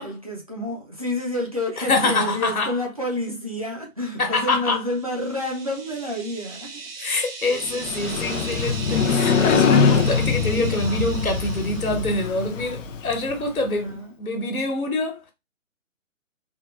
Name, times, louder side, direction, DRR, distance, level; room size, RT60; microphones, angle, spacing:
voice 1, 0.0-6.8 10.1-10.2 13.7-14.1, left 1 dB, 30° right, 0.4 m, -29 dB
voice 2, 1.9-2.7 4.2-4.8 7.0-15.3, left 2 dB, 85° left, 1.1 m, -25 dB
sound 1, 4.7-12.5, right 4 dB, 45° right, 0.7 m, -38 dB
Motorcycle, 7.7-13.6, left 5 dB, 65° left, 0.5 m, -23 dB
3.6 x 2.0 x 2.3 m
figure-of-eight pair, 145°, 41 cm